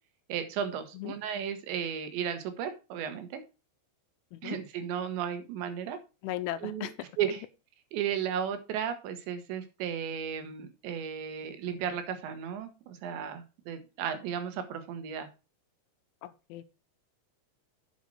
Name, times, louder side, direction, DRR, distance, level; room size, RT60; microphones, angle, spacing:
voice 1, 0.3-3.4 4.4-6.0 6.6-7.4 7.9-15.3, right 8 dB, 75° right, 9 dB, 3.4 m, -34 dB
voice 2, 6.2-6.9 16.2-16.6, left 14 dB, 85° left, 12 dB, 3.1 m, -37 dB
8.3 x 7.5 x 4.6 m, 0.29 s
omnidirectional pair, 5.5 m